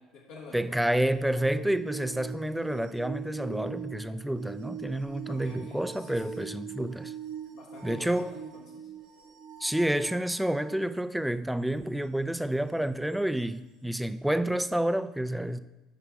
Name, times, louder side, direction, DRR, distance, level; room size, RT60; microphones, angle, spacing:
voice 1, 0.0-0.9 1.2-1.4 5.3-6.4 7.5-8.9, left 3 dB, 80° left, 1.4 m, -48 dB
voice 2, 0.5-7.1 7.8-8.3 9.6-15.6, right 1 dB, 5° right, 0.4 m, -29 dB
sound 1, 1.0-10.8 13.1-13.2, right 9 dB, 80° right, 1.6 m, -43 dB
8.5 x 5.7 x 3.6 m
hypercardioid pair, 65°, 0 cm